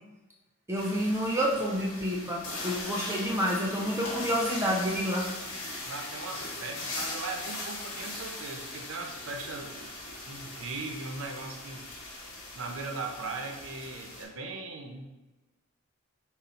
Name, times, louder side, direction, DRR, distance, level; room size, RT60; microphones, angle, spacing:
sound 1, 0.7-14.2, left 2 dB, 85° left, 1.0 m, -40 dB
voice 1, 0.7-5.3, equal, 15° right, -3 dB, 0.4 m, -29 dB
voice 2, 5.8-11.9 12.5-15.1, right 3 dB, 70° right, 3 dB, 0.5 m, -39 dB
4.0 x 2.0 x 3.9 m, 1.1 s
head